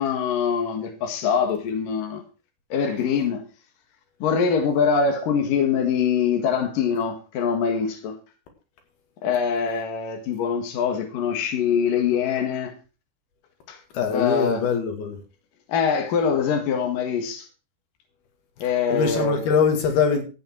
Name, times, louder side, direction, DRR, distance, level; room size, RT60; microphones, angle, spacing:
voice 1, 0.0-2.2 2.7-3.4 4.2-8.1 9.2-12.7 13.7-13.8 14.1-14.6 15.7-17.5 18.6-19.4, left 6 dB, 65° left, 3.3 m, -23 dB
voice 2, 13.9-15.2 18.9-20.2, left 6 dB, 85° left, 4.1 m, -22 dB
14.0 x 9.1 x 4.6 m
omnidirectional pair, 4.3 m